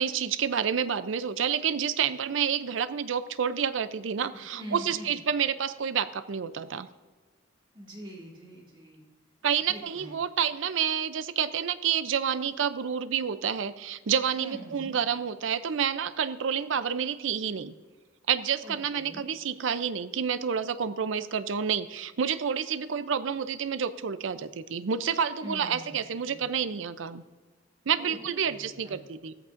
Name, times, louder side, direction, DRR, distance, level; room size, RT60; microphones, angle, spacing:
voice 1, 0.0-6.9 9.4-17.7 18.3-27.2 27.9-29.3, right 7 dB, 80° right, 13 dB, 0.5 m, -29 dB
voice 2, 4.5-5.2 7.7-9.0 9.7-10.1 14.3-15.0 18.6-19.2 25.4-26.0 26.3-26.5 28.0-28.2 28.4-29.0, equal, 25° right, -2 dB, 2.1 m, -43 dB
14.0 x 14.0 x 2.6 m, 1.3 s
head